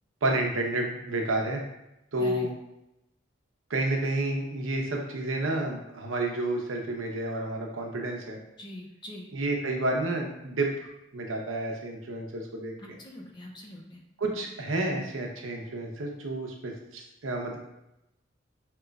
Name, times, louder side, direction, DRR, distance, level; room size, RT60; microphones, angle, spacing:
voice 1, 0.2-1.6 2.1-2.5 3.7-8.4 9.3-10.7 11.1-12.7 14.2-17.6, right 2 dB, 90° right, 1 dB, 0.8 m, -30 dB
voice 2, 8.6-9.3 12.8-14.0, left 1 dB, 20° left, 0 dB, 0.5 m, -43 dB
5.0 x 2.9 x 2.3 m, 0.88 s
head